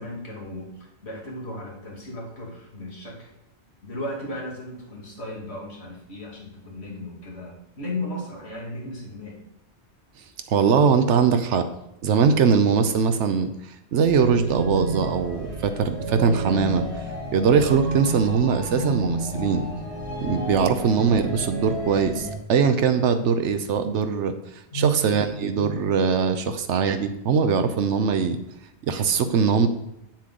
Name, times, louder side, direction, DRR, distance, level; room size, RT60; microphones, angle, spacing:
voice 1, 0.0-3.3 3.8-9.4 24.7-25.3, left 1 dB, 65° left, -2 dB, 2.5 m, -35 dB
voice 2, 10.5-11.7 12.0-19.6 20.2-24.3 24.7-28.4 28.9-29.7, right 6 dB, 85° right, 8 dB, 1.0 m, -21 dB
sound 1, 14.0-22.3, right 1 dB, 30° right, 2.2 m, -31 dB
7.7 x 7.2 x 3.8 m, 0.86 s
omnidirectional pair, 1.2 m